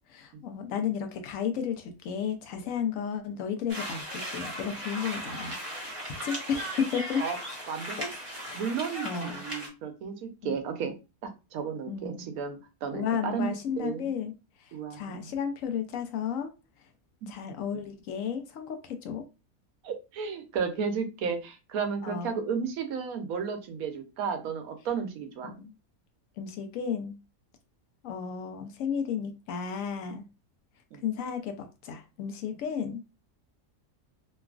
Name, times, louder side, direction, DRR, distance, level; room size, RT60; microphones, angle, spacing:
voice 1, 0.1-7.2 8.0-8.1 8.4-8.6 9.0-9.4 10.4-10.5 11.8-12.4 12.9-14.3 14.6-16.5 17.3-19.2 22.0-22.4 25.4-25.7 26.4-27.2 28.0-30.3 31.0-33.1, left 7 dB, 75° left, 6 dB, 0.9 m, -33 dB
sound 1, 3.7-9.7, equal, 25° right, 0.8 m, -37 dB
voice 2, 8.5-10.9 11.5-13.5 13.8-14.1 14.7-15.3 19.8-25.6 30.9-31.0 32.7-32.8, right 6 dB, 85° right, 6 dB, 1.1 m, -33 dB
3.0 x 2.3 x 2.3 m, 0.28 s
omnidirectional pair, 1.5 m